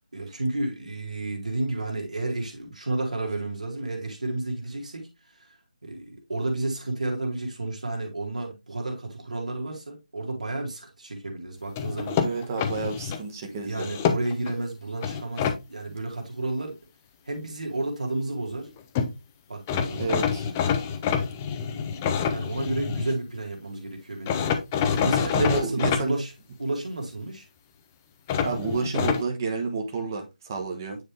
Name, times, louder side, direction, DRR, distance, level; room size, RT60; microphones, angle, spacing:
voice 1, 0.1-5.1 5.4-5.6 5.8-12.2 13.5-16.8 17.3-18.7 19.5-20.1 21.5-24.5 24.9-26.3 26.6-27.5, right 2 dB, 60° right, 2.0 m, -31 dB
sound 1, 11.8-13.2 13.7-14.5 15.0-15.6 18.7-18.8 18.9-19.1 19.7-23.2 24.3-26.0 28.3-29.2, left 7 dB, 15° left, 0.6 m, -26 dB
voice 2, 12.2-14.0 20.0-20.5 25.3-26.2 28.4-31.0, right 4 dB, 25° right, 1.2 m, -29 dB
9.3 x 3.4 x 3.3 m
figure-of-eight pair, 155°, 4 cm